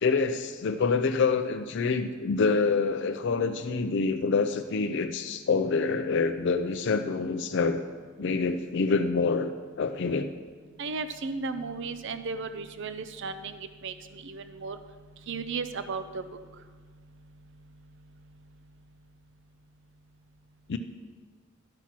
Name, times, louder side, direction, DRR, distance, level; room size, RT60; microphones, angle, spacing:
voice 1, 0.0-7.8 8.2-9.5 9.8-10.3 20.7-20.8, left 4 dB, 60° left, 7 dB, 0.4 m, -26 dB
voice 2, 10.8-14.8 15.3-16.2, right 4 dB, 60° right, 10 dB, 0.5 m, -35 dB
11.5 x 5.8 x 5.9 m, 1.5 s
head